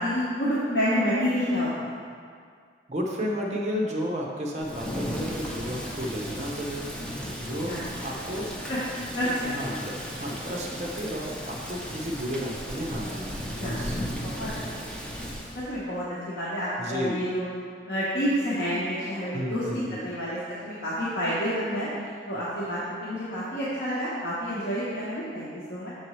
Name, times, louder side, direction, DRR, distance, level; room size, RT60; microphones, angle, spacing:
voice 1, 0.0-1.9 7.6-7.9 8.7-8.8 9.1-9.6 13.6-13.8 14.2-14.5 14.8-15.0 15.5-17.5 17.9-25.9, equal, 75° left, -9 dB, 0.9 m, -29 dB
voice 2, 2.9-6.9 7.4-8.5 9.2-14.0 16.8-17.2 19.3-20.0, equal, 40° right, -1 dB, 0.7 m, -32 dB
Thunder / Rain, 4.6-15.6, equal, 5° left, 0.5 m, -35 dB
6.8 x 4.7 x 3.0 m, 2.1 s
head